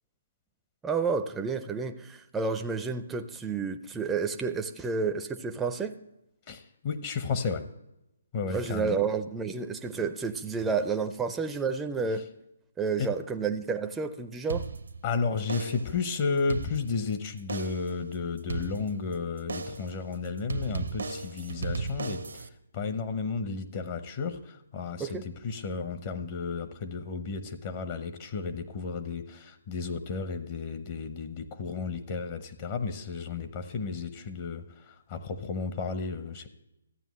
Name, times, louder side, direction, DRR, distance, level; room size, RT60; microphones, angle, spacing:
voice 1, 0.8-6.0 8.5-12.3 12.8-14.7 25.0-25.2, right 5 dB, 10° right, 7 dB, 0.5 m, -30 dB
voice 2, 6.5-7.7 8.3-9.0 13.0-13.1 15.0-36.5, left 5 dB, 40° left, 8 dB, 0.8 m, -33 dB
sound 1, 14.5-15.1 15.5-16.0 16.4-17.1 17.5-18.0 18.5-19.1 19.5-20.0 20.5-22.5, right 4 dB, 80° right, 0.8 m, -35 dB
14.0 x 9.0 x 3.1 m, 0.88 s
figure-of-eight pair, 145°, 0 cm